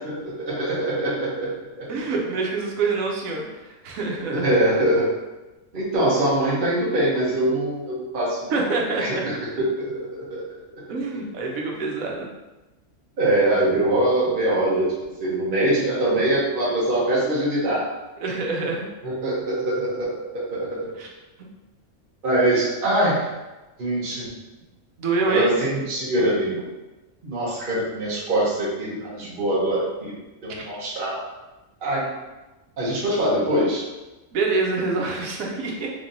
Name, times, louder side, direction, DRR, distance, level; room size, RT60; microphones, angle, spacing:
voice 1, 0.2-1.9 4.3-5.1 5.7-8.6 9.0-10.6 13.2-14.9 15.2-17.8 19.0-20.1 20.5-20.9 22.2-23.3 23.8-24.3 25.3-26.7 27.2-30.1 30.4-31.2 31.8-32.1 32.8-33.8, right 1 dB, 40° right, -7 dB, 1.1 m, -23 dB
voice 2, 1.9-4.5 8.5-9.3 9.6-9.7 10.9-12.3 18.2-18.9 20.9-21.1 25.0-25.5 34.3-35.9, right 3 dB, 80° right, 0 dB, 1.1 m, -26 dB
3.7 x 3.3 x 2.6 m, 1.1 s
omnidirectional pair, 1.4 m